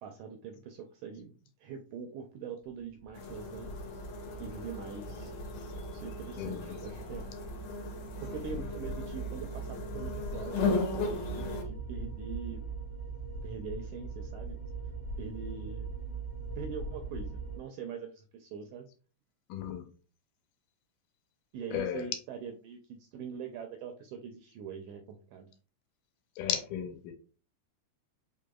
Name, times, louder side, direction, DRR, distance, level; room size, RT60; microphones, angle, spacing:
voice 1, 0.0-1.3 1.6-3.7 4.4-5.3 5.9-7.3 8.2-12.6 13.4-14.6 15.2-15.9 16.6-18.9 21.5-25.5, right 6 dB, 80° right, 1.7 m, -43 dB
sound 1, 3.0-17.6, right 4 dB, 30° left, 1.2 m, -41 dB
sound 2, 3.1-11.6, left 4 dB, 65° left, 2.0 m, -37 dB
voice 2, 6.4-6.8 19.5-19.9 21.7-22.1 26.4-27.1, left 9 dB, 85° left, 2.2 m, -34 dB
5.0 x 3.4 x 2.2 m
omnidirectional pair, 3.7 m